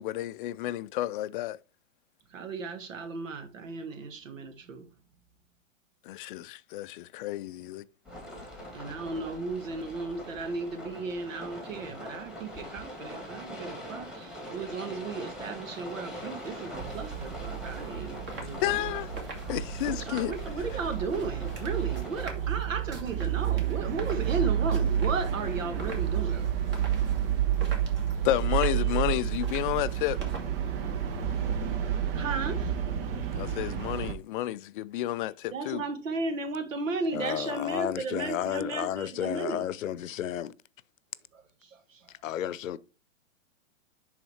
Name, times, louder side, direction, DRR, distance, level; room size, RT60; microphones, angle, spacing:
voice 1, 0.0-1.6 6.0-7.9 18.6-19.1 19.5-20.4 28.2-30.2 33.3-35.8, left 14 dB, 45° left, 0.4 m, -31 dB
voice 2, 2.3-4.9 8.7-18.8 19.8-26.5 32.1-32.8 33.1-33.2 35.5-39.7 41.3-42.1, right 4 dB, 75° right, 1.4 m, -35 dB
sound 1, 8.1-22.3, equal, ahead, 2.4 m, -43 dB
sound 2, 15.6-31.7, right 2 dB, 30° right, 2.3 m, -47 dB
sound 3, 16.7-34.1, right 9 dB, 45° right, 1.1 m, -30 dB
voice 3, 37.1-40.5 42.2-42.8, left 11 dB, 80° left, 0.7 m, -32 dB
10.5 x 3.9 x 3.1 m
hypercardioid pair, 120°, 39 cm